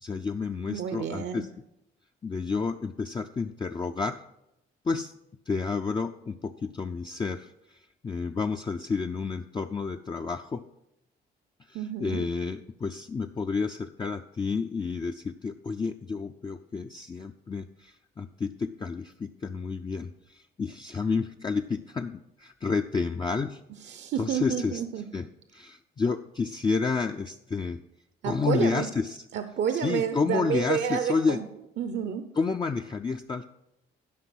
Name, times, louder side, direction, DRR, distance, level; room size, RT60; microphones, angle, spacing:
voice 1, 0.0-1.5 2.2-4.2 4.8-5.1 5.5-10.6 11.7-23.6 24.2-24.8 25.1-25.3 25.5-27.8 28.2-29.2 29.8-31.4 32.4-33.4, left 4 dB, 25° left, 4 dB, 0.4 m, -30 dB
voice 2, 0.7-1.5 11.7-12.3 23.8-25.0 28.2-28.9 29.3-31.5 31.8-32.2, right 8 dB, 60° right, 8 dB, 0.7 m, -30 dB
12.0 x 5.3 x 6.1 m, 0.83 s
cardioid pair, 90°, 20 cm